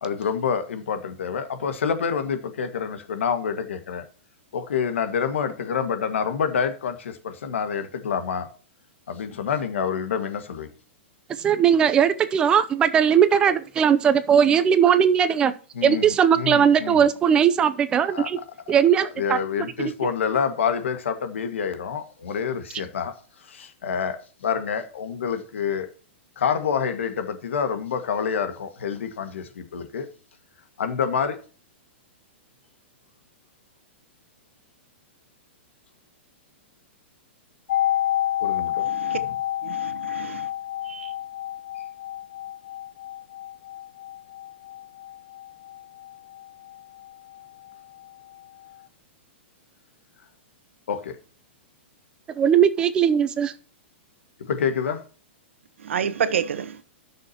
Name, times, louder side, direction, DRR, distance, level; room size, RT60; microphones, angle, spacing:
voice 1, 0.0-4.0 4.5-8.5 9.1-10.7 15.7-16.0 16.4-17.0 18.1-18.3 19.2-25.9 26.4-30.1 30.8-31.4 38.4-38.9 39.1-39.2 50.9-51.2 54.4-55.0, left 6 dB, 85° left, 1.8 m, -27 dB
voice 2, 11.4-15.5 15.8-18.4 18.7-19.4 19.8-20.1 52.4-53.5, right 8 dB, 15° right, 0.5 m, -19 dB
sound 1, 37.7-47.4 47.7-47.8, left 12 dB, 60° left, 0.8 m, -29 dB
voice 3, 38.8-39.2 39.6-40.5 40.8-41.1 55.8-56.8, right 7 dB, 90° right, 1.2 m, -29 dB
16.5 x 6.3 x 2.9 m
hypercardioid pair, 165°, 6 cm